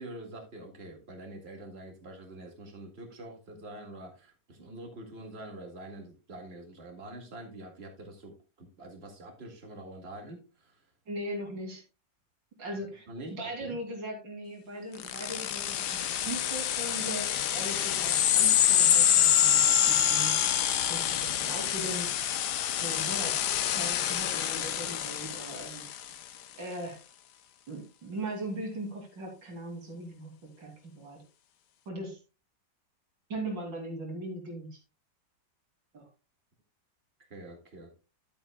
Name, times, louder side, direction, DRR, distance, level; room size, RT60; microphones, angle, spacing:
voice 1, 0.0-10.8 13.1-13.8 37.3-37.9, right 1 dB, 35° right, 2 dB, 2.3 m, -45 dB
voice 2, 11.1-11.8 12.6-13.1 13.3-17.3 17.5-20.4 20.8-22.1 22.8-23.4 23.8-25.9 26.6-27.0 27.7-31.2 31.9-32.2 33.3-34.8 35.9-36.1, right 1 dB, 90° right, 0 dB, 3.7 m, -39 dB
sound 1, 15.0-26.1, left 10 dB, 70° left, 1.3 m, -26 dB
12.0 x 8.3 x 2.3 m, 0.30 s
omnidirectional pair, 1.9 m